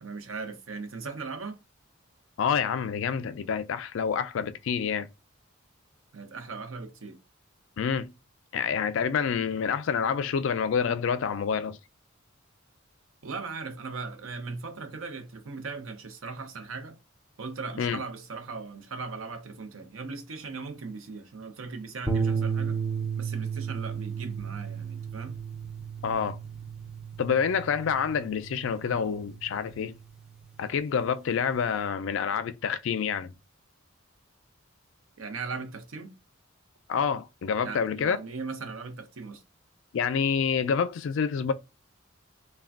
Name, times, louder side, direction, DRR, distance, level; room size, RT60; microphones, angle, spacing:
voice 1, 0.0-1.6 6.1-7.2 13.2-17.0 17.4-22.8 23.2-25.4 35.2-36.1 37.6-39.4, right 4 dB, 80° right, 0.6 m, -38 dB
voice 2, 2.4-5.1 7.8-8.1 8.5-11.8 17.8-18.0 26.0-26.4 27.2-29.9 30.6-33.3 36.9-38.2 39.9-41.5, left 6 dB, 65° left, 0.3 m, -27 dB
sound 1, 22.1-30.5, right 6 dB, 5° right, 0.4 m, -34 dB
3.2 x 2.2 x 2.3 m
head